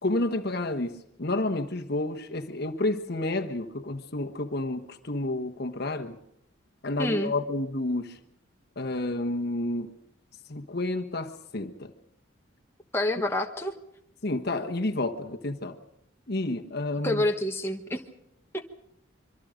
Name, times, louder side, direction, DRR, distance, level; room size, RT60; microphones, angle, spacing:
voice 1, 0.0-6.2 6.8-8.2 8.8-9.9 10.5-11.9 14.2-15.8 16.3-17.2, left 2 dB, 50° left, 1.3 m, -30 dB
voice 2, 7.0-7.3 12.9-13.8 17.0-18.0, left 1 dB, 10° left, 1.2 m, -27 dB
25.5 x 24.0 x 5.2 m
head